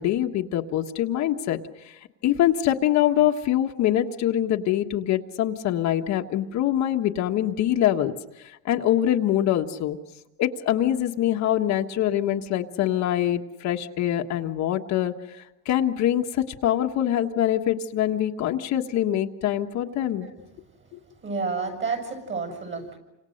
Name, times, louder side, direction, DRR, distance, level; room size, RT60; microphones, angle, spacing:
voice 1, 0.0-1.6 1.8-8.1 8.4-10.0 10.4-20.3, left 11 dB, 45° left, 3 dB, 1.5 m, -24 dB
voice 2, 20.0-20.4 21.2-23.0, right 4 dB, 30° right, 5 dB, 7.5 m, -31 dB
29.0 x 26.5 x 6.6 m, 0.96 s
cardioid pair, 135°, 37 cm